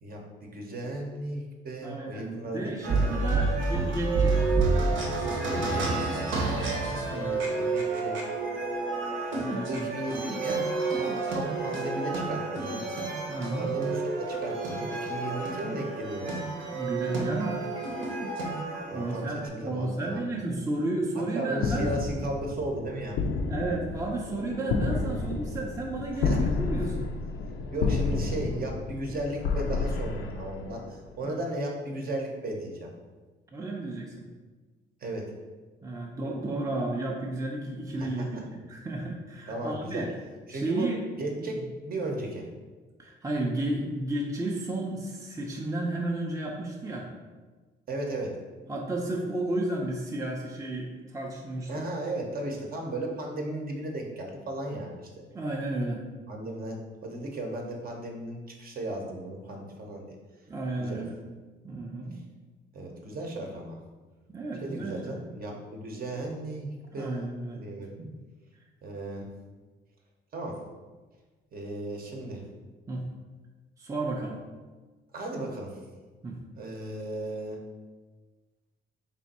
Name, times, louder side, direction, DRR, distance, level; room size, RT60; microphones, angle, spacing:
voice 1, 0.0-2.9 5.5-6.4 7.1-8.2 9.7-12.8 13.6-16.4 18.9-20.4 21.3-23.2 26.2-26.4 27.7-32.9 35.0-35.3 38.0-38.4 39.5-40.1 40.5-40.9 41.2-42.5 47.9-48.4 51.7-55.2 56.3-60.1 60.8-61.0 62.7-63.8 64.6-68.0 68.8-69.3 70.3-70.6 71.5-72.4 75.1-75.8 76.6-77.6, right 1 dB, 50° right, 1 dB, 0.8 m, -35 dB
voice 2, 1.8-4.5 7.1-7.4 9.3-10.0 10.4-10.5 13.3-13.7 16.7-17.6 18.9-22.0 23.5-27.1 31.2-31.4 33.5-34.3 35.8-40.1 40.5-41.0 41.4-41.6 43.0-47.1 48.7-51.8 55.3-56.0 60.5-61.1 61.6-62.2 64.3-65.1 66.9-67.6 68.0-68.1 72.9-73.0 73.8-74.4 76.2-76.4, right 2 dB, 15° right, -1 dB, 0.5 m, -32 dB
sound 1, 2.8-19.5, right 3 dB, 80° right, 0.9 m, -29 dB
sound 2, 21.6-31.1, left 4 dB, 75° left, 0.5 m, -31 dB
3.4 x 2.6 x 4.1 m, 1.3 s
cardioid pair, 90°, 20 cm